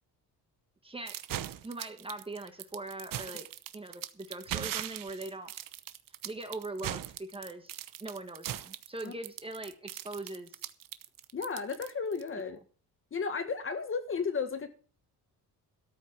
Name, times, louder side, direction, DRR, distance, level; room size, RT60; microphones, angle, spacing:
voice 1, 0.8-1.2 1.6-3.5 3.7-5.5 6.2-7.7 8.0-10.6, right 2 dB, 15° right, 7 dB, 1.5 m, -41 dB
sound 1, 1.1-12.3, right 12 dB, 60° right, 1.0 m, -39 dB
voice 2, 11.3-12.6 13.1-14.7, left 5 dB, 35° left, 9 dB, 1.8 m, -33 dB
13.0 x 6.2 x 7.4 m, 0.40 s
cardioid pair, 115°, 38 cm